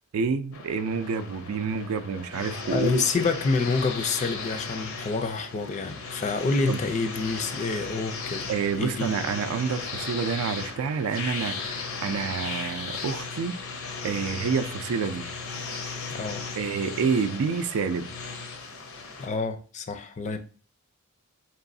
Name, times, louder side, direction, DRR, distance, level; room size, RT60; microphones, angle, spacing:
voice 1, 0.1-3.0 6.7-6.8 8.5-13.6 14.0-15.3 16.6-18.1, right 5 dB, 80° right, 0.4 m, -28 dB
sound 1, 0.5-19.3, left 4 dB, 80° left, 0.7 m, -36 dB
voice 2, 2.7-8.5 8.8-9.1 16.1-16.5 19.2-20.4, left 4 dB, 35° left, 0.4 m, -28 dB
4.6 x 3.0 x 2.6 m
head